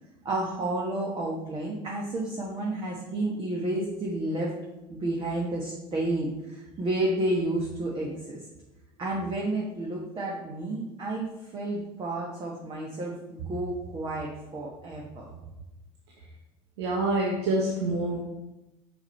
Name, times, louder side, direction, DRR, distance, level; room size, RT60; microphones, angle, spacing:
voice 1, 0.2-4.5 4.9-8.4 9.0-11.3 11.5-15.4, right 1 dB, 35° right, -2 dB, 1.3 m, -31 dB
voice 2, 16.8-18.2, right 2 dB, 85° right, -2 dB, 0.9 m, -26 dB
5.3 x 4.7 x 4.3 m, 0.99 s
hypercardioid pair, 85°, 14 cm